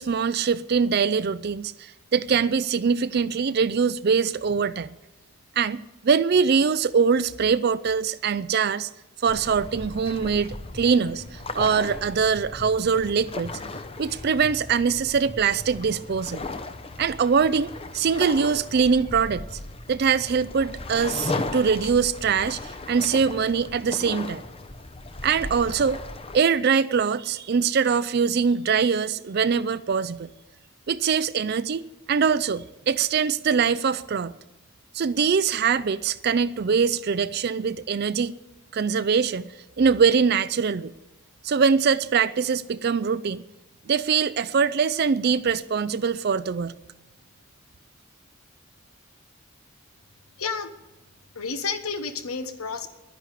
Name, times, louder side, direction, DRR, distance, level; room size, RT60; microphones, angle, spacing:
voice 1, 0.0-4.9 5.6-8.9 9.2-13.6 14.0-16.4 17.0-19.5 19.9-24.4 25.2-26.0 26.3-30.3 30.9-31.8 32.1-34.3 34.9-38.3 38.7-39.5 39.8-40.9 41.4-43.4 43.9-46.7, right 6 dB, 45° right, 0.4 m, -23 dB
sound 1, 9.3-26.4, left 2 dB, 25° left, 0.7 m, -36 dB
voice 2, 50.4-50.7 51.3-52.9, left 5 dB, 80° left, 1.2 m, -30 dB
11.5 x 10.5 x 8.3 m
head